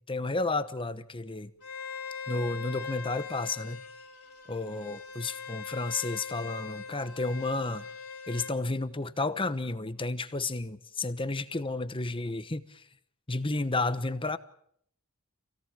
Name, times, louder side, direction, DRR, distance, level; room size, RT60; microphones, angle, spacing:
voice 1, 0.1-1.5 2.3-3.8 4.5-7.9 8.3-12.9 13.3-14.4, left 3 dB, 25° left, 12 dB, 1.0 m, -32 dB
Bowed string instrument, 1.6-8.5, left 6 dB, 80° left, 3.3 m, -41 dB
27.0 x 17.5 x 9.0 m, 0.69 s
head